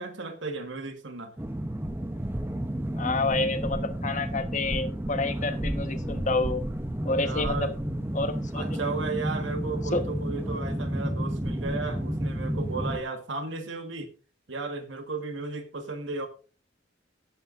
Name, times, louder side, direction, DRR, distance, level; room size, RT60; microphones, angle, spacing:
voice 1, 0.0-1.3 7.0-7.7 8.5-14.1 14.5-16.3, right 3 dB, 70° right, 1.5 m, -34 dB
sound 1, 1.4-13.0, right 1 dB, 10° right, 0.7 m, -31 dB
voice 2, 3.0-6.6 7.0-7.7 8.1-8.8 9.9-10.0, left 3 dB, 40° left, 1.2 m, -29 dB
18.0 x 8.1 x 2.6 m
head